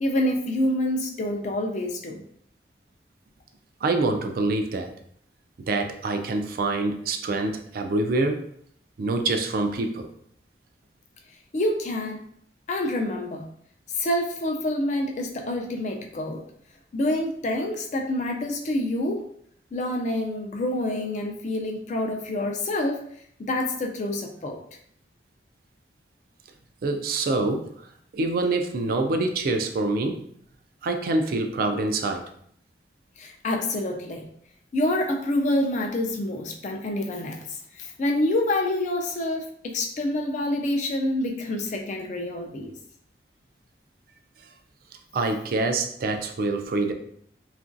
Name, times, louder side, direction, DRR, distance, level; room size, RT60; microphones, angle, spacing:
voice 1, 0.0-2.2 11.5-12.2 12.7-13.4 14.0-16.4 16.9-19.2 19.7-23.0 23.4-24.6 33.2-34.2 34.7-42.7, left 1 dB, 40° left, 2 dB, 0.4 m, -27 dB
voice 2, 3.8-4.9 5.7-8.5 9.0-10.1 26.8-27.7 28.1-30.2 30.8-32.3 45.1-46.9, right 2 dB, 55° right, 5 dB, 0.3 m, -25 dB
2.9 x 2.4 x 2.5 m, 0.65 s
head